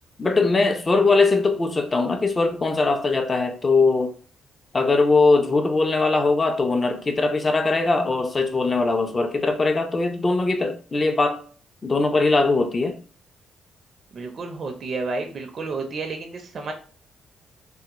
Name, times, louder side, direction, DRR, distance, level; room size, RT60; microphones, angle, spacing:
voice 1, 0.2-4.1 4.7-11.4 11.8-13.0, left 3 dB, 30° left, 0.5 m, -21 dB
voice 2, 14.1-16.7, right 3 dB, 50° right, 0.5 m, -31 dB
3.4 x 2.1 x 2.9 m
cardioid pair, 90°, 0 cm